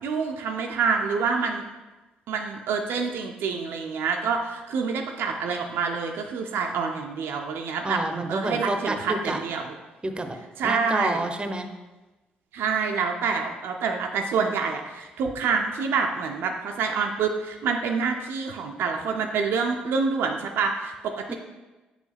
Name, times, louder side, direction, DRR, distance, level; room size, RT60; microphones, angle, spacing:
voice 1, 0.0-1.6 2.3-8.0 8.3-9.7 10.6-11.2 12.5-21.3, right 5 dB, 65° right, 3 dB, 0.5 m, -27 dB
voice 2, 7.8-9.4 10.0-10.4 10.6-11.7 21.3-21.4, right 2 dB, 25° right, 7 dB, 0.7 m, -28 dB
6.2 x 4.7 x 3.4 m, 1.1 s
hypercardioid pair, 45°, 4 cm